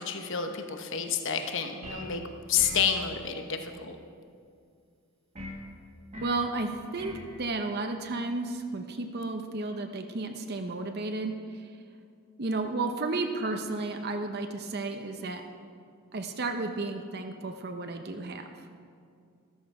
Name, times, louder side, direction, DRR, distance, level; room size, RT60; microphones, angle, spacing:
voice 1, 0.0-2.2 2.5-4.0, left 7 dB, 55° left, 5 dB, 1.0 m, -29 dB
sound 1, 1.8-2.2 2.6-2.9 5.4-5.6 6.1-6.4 7.0-7.3, left 1 dB, 30° right, 1.6 m, -40 dB
voice 2, 6.2-11.7 12.4-15.4 16.1-18.6, right 3 dB, 45° right, 5 dB, 0.8 m, -33 dB
13.5 x 13.5 x 4.8 m, 2.3 s
head